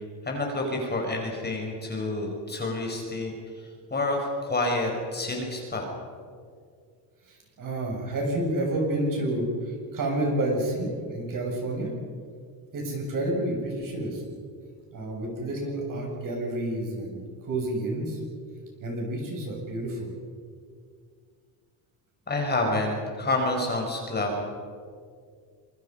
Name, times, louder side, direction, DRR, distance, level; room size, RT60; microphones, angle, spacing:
voice 1, 0.2-5.9 22.3-24.4, left 2 dB, 20° left, 1 dB, 5.0 m, -28 dB
voice 2, 7.3-11.9 12.7-14.2 14.9-18.2 18.8-20.1, right 1 dB, 40° right, 0 dB, 7.6 m, -29 dB
26.5 x 23.5 x 5.6 m, 2.1 s
cardioid pair, 135°, 47 cm